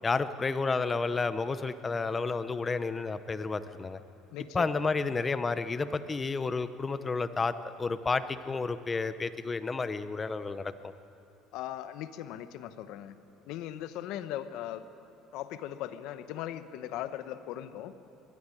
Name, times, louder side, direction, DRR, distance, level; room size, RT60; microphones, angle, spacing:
voice 1, 0.0-4.0 4.5-10.9, left 4 dB, 20° left, 12 dB, 0.7 m, -31 dB
voice 2, 4.3-4.7 11.5-13.1 13.5-14.8 15.3-17.9, left 12 dB, 70° left, 11 dB, 1.0 m, -39 dB
21.5 x 13.0 x 9.8 m, 2.7 s
cardioid pair, 145°, 0 cm